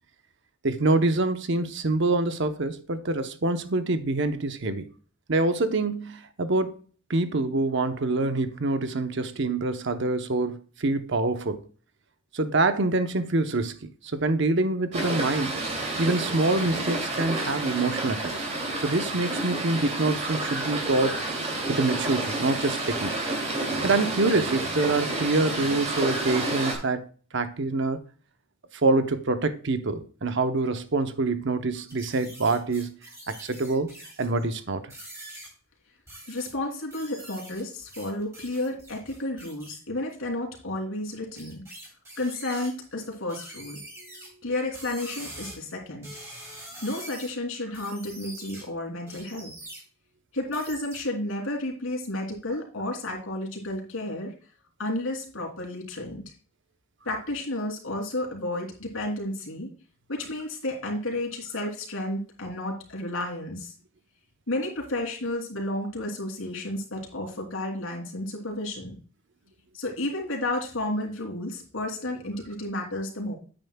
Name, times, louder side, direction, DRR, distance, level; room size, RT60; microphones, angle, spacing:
voice 1, 0.6-4.9 5.3-6.8 7.1-11.6 12.3-15.5 16.0-18.3 18.8-21.2 21.7-23.1 23.8-28.0 28.8-33.0 33.3-33.9 34.2-34.9, right 2 dB, 55° right, 0.8 m, -26 dB
sound 1, 14.9-26.8, right 2 dB, 30° right, 2.6 m, -30 dB
sound 2, 31.9-34.4 34.9-35.5 36.1-36.5 36.9-39.8 41.4-42.7 43.3-44.3 44.7-45.6 46.0-47.3 47.7-48.6 49.1-49.8 50.5-51.0, right 1 dB, 15° right, 3.9 m, -44 dB
voice 2, 36.3-41.6 42.2-43.8 44.4-46.1 46.8-49.5 50.3-54.3 54.8-56.2 57.0-59.7 60.1-63.7 64.5-68.9 69.7-73.4, left 1 dB, 75° left, 3.0 m, -32 dB
9.2 x 9.0 x 2.3 m
head